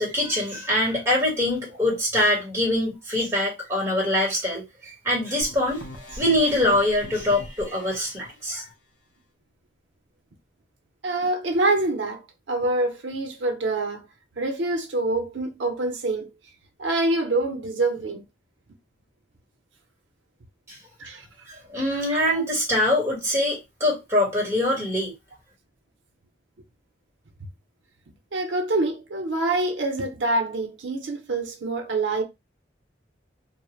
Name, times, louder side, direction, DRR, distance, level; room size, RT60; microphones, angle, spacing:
voice 1, 0.0-4.6 5.0-5.8 6.1-8.6 21.7-25.1, left 1 dB, 15° right, 1.4 m, -23 dB
sound 1, 5.4-8.1, left 1 dB, 45° left, 0.6 m, -41 dB
voice 2, 11.0-12.2 12.5-14.1 14.4-16.3 16.8-18.2 21.0-21.3 21.9-22.4 28.3-32.2, right 2 dB, 85° right, 0.6 m, -26 dB
2.4 x 2.1 x 3.1 m
head